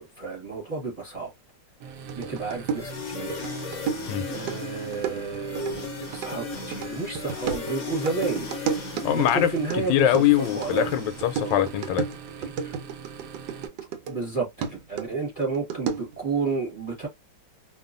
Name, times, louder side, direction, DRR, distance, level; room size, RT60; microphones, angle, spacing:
voice 1, 0.0-1.3 2.1-3.5 4.3-8.5 9.1-10.1 10.5-10.9 11.3-11.5 12.6-12.7 14.1-17.1, right 4 dB, 25° right, 0.9 m, -31 dB
sound 1, 1.8-13.7, right 6 dB, 65° right, 0.9 m, -42 dB
sound 2, 2.1-14.3 14.6-16.2, right 7 dB, 80° right, 1.3 m, -33 dB
sound 3, 2.7-11.9, left 6 dB, 55° left, 0.9 m, -38 dB
voice 2, 9.0-12.1, left 11 dB, 85° left, 1.3 m, -23 dB
3.0 x 2.4 x 2.4 m
omnidirectional pair, 1.9 m